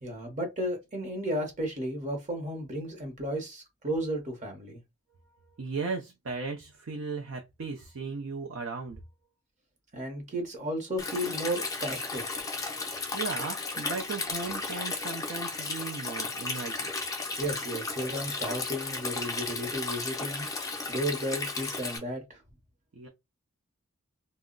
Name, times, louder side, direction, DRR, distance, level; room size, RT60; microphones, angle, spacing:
voice 1, 0.0-4.8 9.9-12.3 17.4-20.4 20.9-22.4, equal, 35° right, 0.8 m, -33 dB
voice 2, 5.6-9.0 13.1-16.9 22.9-23.1, right 4 dB, 60° right, 0.5 m, -36 dB
Stream, 11.0-22.0, left 3 dB, 15° left, 0.5 m, -34 dB
2.2 x 2.0 x 3.7 m
head